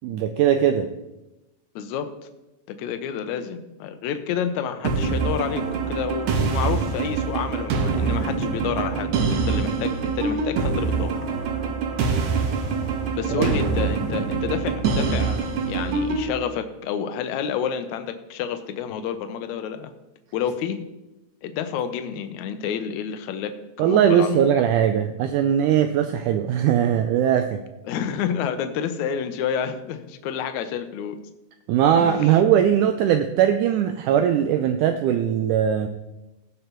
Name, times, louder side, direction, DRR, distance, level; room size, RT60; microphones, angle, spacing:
voice 1, 0.0-0.9 13.3-13.6 23.8-27.6 31.7-35.9, right 9 dB, 85° right, 8 dB, 1.8 m, -20 dB
voice 2, 1.8-2.1 2.8-11.2 13.2-19.9 20.3-20.8 21.4-24.5 25.7-25.8 27.9-31.2 32.0-32.3, left 8 dB, 75° left, 8 dB, 1.8 m, -29 dB
sound 1, 4.8-16.3, right 5 dB, 65° right, 2.1 m, -24 dB
17.0 x 6.8 x 3.0 m, 0.99 s
omnidirectional pair, 4.0 m